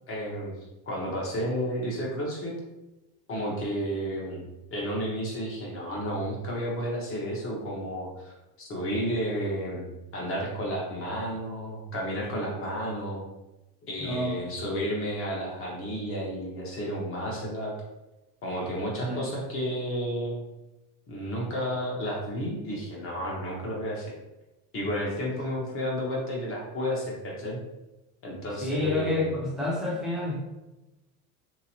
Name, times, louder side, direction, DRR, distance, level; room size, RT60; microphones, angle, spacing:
voice 1, 0.1-0.5 0.9-2.5 3.3-13.2 13.9-17.7 18.4-20.4 21.1-24.1 24.7-27.6 28.2-29.3, equal, 30° left, -2 dB, 1.0 m, -32 dB
voice 2, 14.0-14.4 19.0-19.2 28.6-30.4, left 2 dB, ahead, -6 dB, 0.7 m, -29 dB
3.3 x 2.9 x 2.9 m, 1.0 s
supercardioid pair, 145°, 45 cm